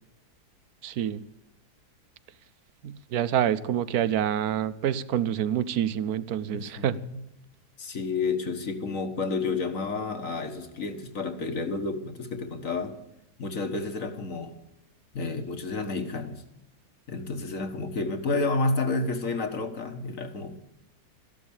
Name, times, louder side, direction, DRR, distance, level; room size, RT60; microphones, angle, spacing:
voice 1, 0.8-1.2 2.8-7.0, right 10 dB, 70° right, 17 dB, 1.2 m, -27 dB
voice 2, 6.5-7.2 7.8-13.0 13.4-14.5 15.1-16.4 17.1-20.6, left 3 dB, 55° left, 7 dB, 1.8 m, -30 dB
14.0 x 12.0 x 8.7 m, 0.86 s
omnidirectional pair, 1.7 m